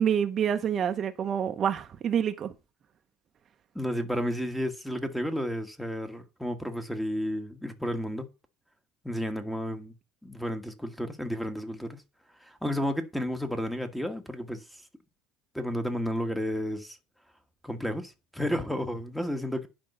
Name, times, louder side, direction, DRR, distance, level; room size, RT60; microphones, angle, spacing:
voice 1, 0.0-2.5, right 8 dB, 40° right, 0.8 m, -27 dB
voice 2, 3.7-8.3 9.0-9.9 10.2-12.0 12.4-14.8 15.5-17.0 17.6-19.7, equal, ahead, 1.5 m, -32 dB
10.5 x 5.4 x 5.5 m
supercardioid pair, 110°, 0 cm